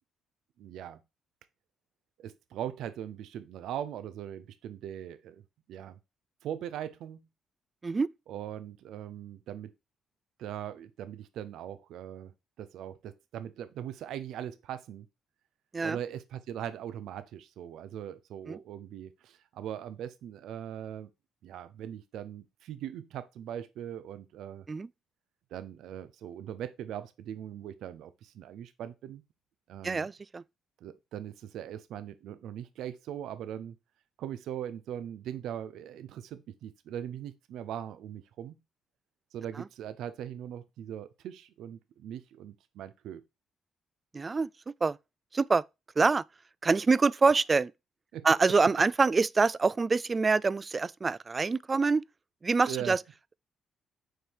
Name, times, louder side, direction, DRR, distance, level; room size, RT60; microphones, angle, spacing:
voice 1, 0.6-1.0 2.2-5.4 5.7-6.0 6.4-7.2 8.3-9.7 10.4-12.3 12.6-15.1 15.8-21.1 21.4-24.6 25.5-29.2 29.7-30.1 30.8-33.8 34.2-38.6 39.3-43.2 48.1-48.2 52.6-53.0, right 10 dB, 80° right, 0.7 m, -40 dB
voice 2, 29.8-30.4 44.1-44.5 44.8-45.0 45.3-45.6 46.0-46.2 46.6-47.7 48.2-52.0 52.4-53.0, right 4 dB, 30° right, 0.3 m, -25 dB
6.5 x 4.5 x 4.7 m
cardioid pair, 90°, 0 cm